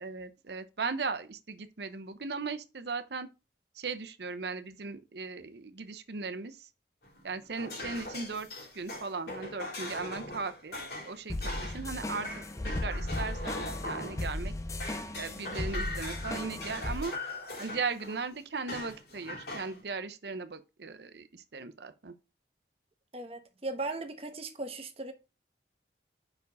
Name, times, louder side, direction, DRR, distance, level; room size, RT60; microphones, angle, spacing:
voice 1, 0.0-3.3 3.8-6.7 7.2-8.5 8.7-10.8 11.0-14.5 15.1-17.1 17.6-22.1, right 4 dB, 70° right, 0.7 m, -37 dB
sound 1, 7.0-14.5 14.8-18.2 18.7-19.8, left 2 dB, 65° left, 2.9 m, -41 dB
sound 2, 11.3-17.0, left 1 dB, 15° left, 0.5 m, -36 dB
voice 2, 23.1-25.1, right 2 dB, 35° right, 1.0 m, -37 dB
5.4 x 4.7 x 4.7 m
head